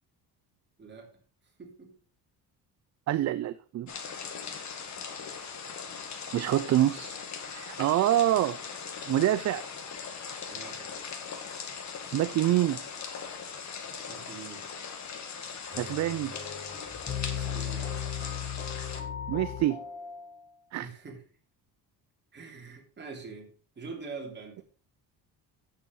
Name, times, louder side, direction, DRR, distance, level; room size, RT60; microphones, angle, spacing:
voice 1, 1.6-1.9 10.5-10.9 14.1-14.7 17.3-17.9 20.8-21.2 22.3-23.5 23.7-24.6, right 4 dB, 25° right, 3.1 m, -44 dB
voice 2, 3.1-3.9 6.3-7.1 7.5-8.6 9.1-9.6 12.1-12.8 15.7-16.4 19.3-19.8 20.7-20.9, right 13 dB, 45° right, 0.4 m, -26 dB
sound 1, 3.9-19.0, left 6 dB, 45° left, 1.8 m, -40 dB
sound 2, 15.7-20.4, left 8 dB, 25° left, 1.6 m, -37 dB
9.5 x 7.6 x 4.7 m
cardioid pair, 135°, 40 cm